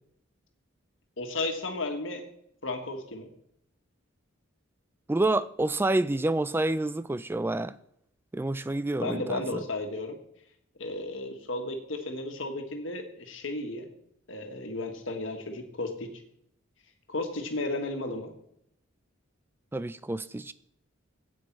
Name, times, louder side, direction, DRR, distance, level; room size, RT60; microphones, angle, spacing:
voice 1, 1.2-2.2 2.6-3.3 9.0-10.2 10.8-13.9 14.3-16.1 17.1-18.3, left 2 dB, 75° left, 1.6 m, -34 dB
voice 2, 5.1-7.8 8.3-9.6 19.7-20.5, right 2 dB, 10° right, 0.3 m, -28 dB
9.8 x 8.5 x 4.6 m
head